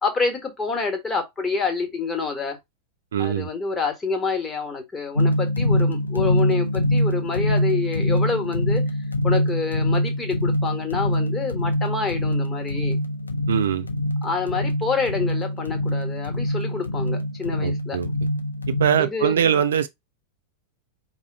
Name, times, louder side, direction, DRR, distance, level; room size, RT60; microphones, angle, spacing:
voice 1, 0.0-2.6 3.2-8.9 9.2-13.0 14.2-18.0 19.0-19.6, left 4 dB, 15° left, 1.3 m, -27 dB
voice 2, 3.1-3.5 13.5-13.9 17.6-18.1 18.7-19.9, right 8 dB, 65° right, 0.3 m, -22 dB
sound 1, 5.2-19.1, left 1 dB, 80° left, 0.5 m, -24 dB
4.8 x 2.2 x 3.9 m
figure-of-eight pair, 90°, 0 cm